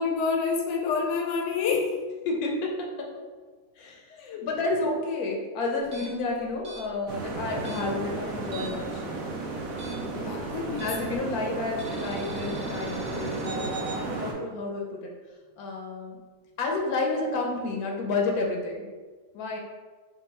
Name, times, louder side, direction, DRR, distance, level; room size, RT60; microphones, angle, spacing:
voice 1, 0.0-1.9 4.1-4.5 10.2-10.9, left 5 dB, 65° left, 1 dB, 0.8 m, -28 dB
voice 2, 2.3-3.1 3.8-9.0 10.8-15.1 15.6-16.2 16.6-18.9 19.3-19.6, left 3 dB, 85° left, 1 dB, 1.2 m, -30 dB
sound 1, 5.8-8.9 9.2-11.2 11.8-14.0, right 3 dB, 50° right, 0.6 m, -42 dB
sound 2, 7.1-14.3, right 3 dB, 75° right, 1.1 m, -34 dB
3.6 x 2.3 x 4.1 m, 1.4 s
omnidirectional pair, 1.5 m